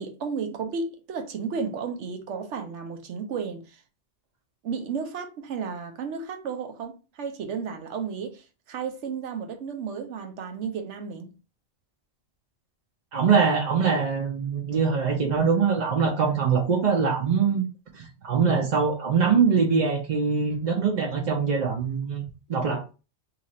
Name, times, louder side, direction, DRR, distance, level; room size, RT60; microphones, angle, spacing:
voice 1, 0.0-3.8 4.6-11.3, right 5 dB, 80° right, 1.0 m, -33 dB
voice 2, 13.1-17.6 17.9-22.2 22.5-22.9, right 5 dB, 50° right, 0.6 m, -23 dB
2.9 x 2.4 x 4.0 m
omnidirectional pair, 1.2 m